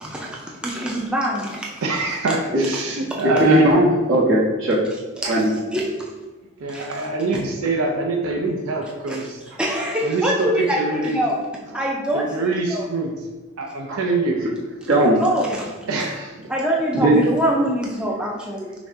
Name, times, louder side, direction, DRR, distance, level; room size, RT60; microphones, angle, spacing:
voice 1, 0.0-1.8 2.8-2.9 5.2-5.4 5.7-5.9 6.7-7.0 9.1-11.4 11.7-12.3 12.7-12.8 15.2-15.7 16.5-18.7, equal, 5° right, -3 dB, 0.3 m, -24 dB
voice 2, 1.8-3.7 6.6-9.4 10.0-10.5 10.8-11.2 12.1-13.1 13.6-14.5 15.9-16.3, right 3 dB, 85° right, 0 dB, 0.5 m, -24 dB
voice 3, 3.4-4.8 5.2-5.5 13.9-14.1 14.9-15.2 16.9-17.2, right 1 dB, 70° right, -5 dB, 1.1 m, -17 dB
5.7 x 2.1 x 2.6 m, 1.2 s
head